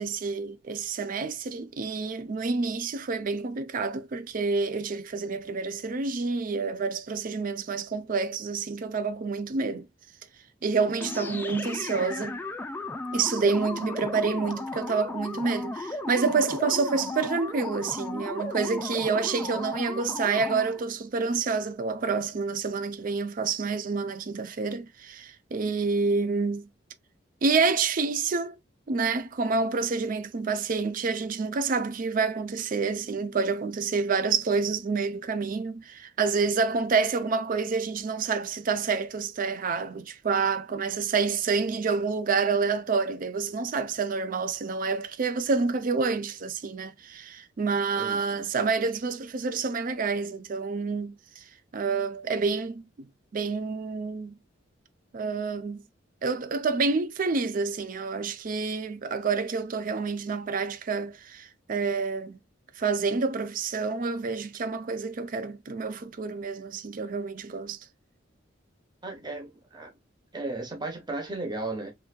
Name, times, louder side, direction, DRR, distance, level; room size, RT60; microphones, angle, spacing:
voice 1, 0.0-9.9 10.6-12.4 13.1-26.7 27.4-28.6 28.9-51.4 51.7-53.1 53.3-54.4 55.1-55.8 56.2-62.4 62.8-67.8, right 4 dB, 45° right, 0.4 m, -28 dB
sound 1, 11.0-20.8, left 2 dB, 10° left, 0.4 m, -35 dB
voice 2, 48.0-48.4 69.0-69.9 70.3-71.9, right 2 dB, 25° right, 0.9 m, -35 dB
3.3 x 3.0 x 2.2 m
head